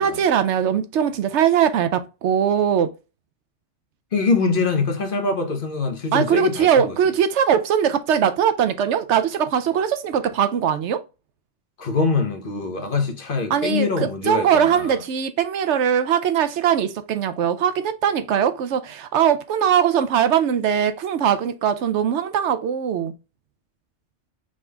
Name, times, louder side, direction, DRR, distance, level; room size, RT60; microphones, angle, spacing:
voice 1, 0.0-2.9 6.1-11.0 13.5-23.1, right 8 dB, 75° right, 0.9 m, -21 dB
voice 2, 4.1-7.0 11.8-15.0, left 4 dB, 50° left, 1.0 m, -24 dB
5.1 x 3.7 x 2.2 m
omnidirectional pair, 1.2 m